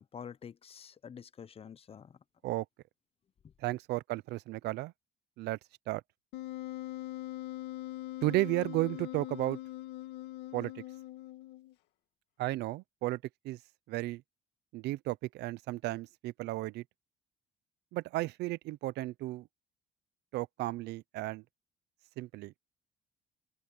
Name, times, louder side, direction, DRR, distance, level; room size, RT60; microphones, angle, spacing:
voice 1, 0.0-2.1, left 7 dB, 35° left, 0.9 m, -48 dB
voice 2, 3.6-4.9 5.4-5.6 5.9-6.0 8.2-9.6 10.5-10.7 12.4-13.2 13.4-13.6 13.9-14.2 14.7-16.8 17.9-19.5 20.3-21.4 22.2-22.5, right 18 dB, 80° right, 0.6 m, -33 dB
Wind instrument woodwind instrument, 6.3-11.7, left 15 dB, 90° left, 2.2 m, -42 dB
open air
cardioid pair, 110°, 17 cm